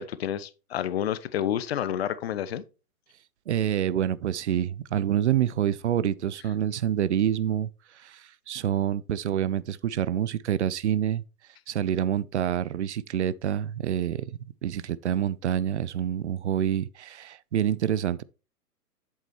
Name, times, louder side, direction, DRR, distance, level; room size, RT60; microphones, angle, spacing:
voice 1, 0.0-2.6, left 10 dB, 40° left, 0.6 m, -29 dB
voice 2, 3.5-7.7 7.9-11.2 11.7-14.3 14.6-18.2, right 10 dB, 50° right, 0.5 m, -27 dB
8.0 x 7.3 x 3.0 m
figure-of-eight pair, 120°, 48 cm